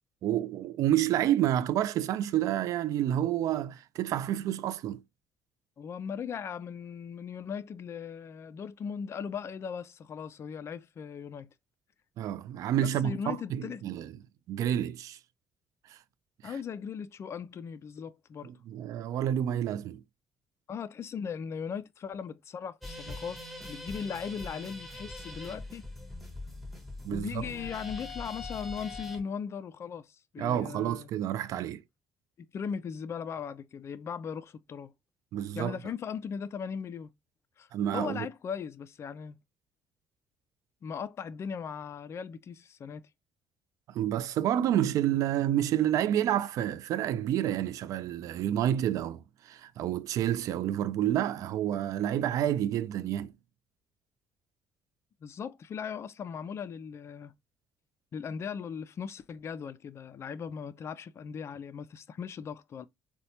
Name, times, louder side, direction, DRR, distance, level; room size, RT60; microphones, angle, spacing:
voice 1, 0.2-5.0 12.2-14.1 14.5-15.2 15.9-16.0 16.4-16.5 18.4-20.0 27.0-27.3 30.4-31.8 35.3-35.8 37.7-38.3 43.9-53.3, right 11 dB, 70° right, 0.3 m, -29 dB
voice 2, 5.8-11.5 12.8-13.9 16.4-18.5 20.7-25.8 27.1-31.1 32.4-34.9 35.6-37.1 37.6-37.7 37.9-39.4 40.8-43.0 55.2-57.3 58.1-62.9, left 6 dB, 50° left, 0.4 m, -38 dB
sound 1, 22.8-29.2, left 2 dB, ahead, 1.0 m, -42 dB
4.1 x 2.1 x 2.7 m
supercardioid pair, 65°, 6 cm